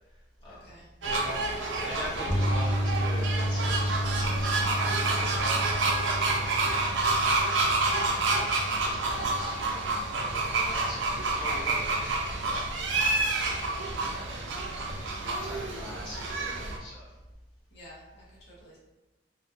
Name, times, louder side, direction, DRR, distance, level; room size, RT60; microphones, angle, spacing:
voice 1, 0.5-0.9 7.8-8.3 17.7-18.8, equal, 65° left, -7 dB, 0.6 m, -52 dB
voice 2, 1.0-6.3 6.7-7.5 8.3-9.6 10.5-12.8 13.2-13.6 14.0-14.4 14.7-14.9 15.2-17.1, left 1 dB, 25° left, -9 dB, 0.8 m, -43 dB
sound 1, 1.0-16.8, right 3 dB, 80° right, 0.4 m, -29 dB
sound 2, 2.3-14.5 14.9-15.1 17.3-17.4, equal, 35° right, 0.7 m, -33 dB
2.3 x 2.1 x 2.6 m, 1.1 s
head